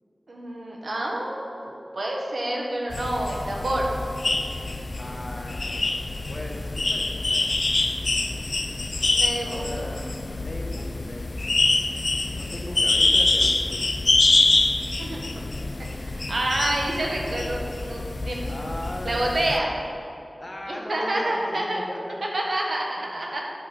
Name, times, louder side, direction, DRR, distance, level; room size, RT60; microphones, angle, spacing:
voice 1, 0.3-3.9 9.1-9.9 15.0-15.4 16.0-18.5 19.0-19.7 20.7-21.8 22.3-23.4, right 1 dB, 75° right, -1 dB, 1.4 m, -28 dB
sound 1, 2.9-19.6, left 2 dB, 65° left, 0.5 m, -25 dB
voice 2, 5.0-5.7 6.3-7.5 9.4-11.4 12.3-13.9 18.4-19.8 20.4-22.3, left 1 dB, 30° left, 0 dB, 1.3 m, -37 dB
9.8 x 6.1 x 4.4 m, 2.9 s
wide cardioid pair, 60°, 0 cm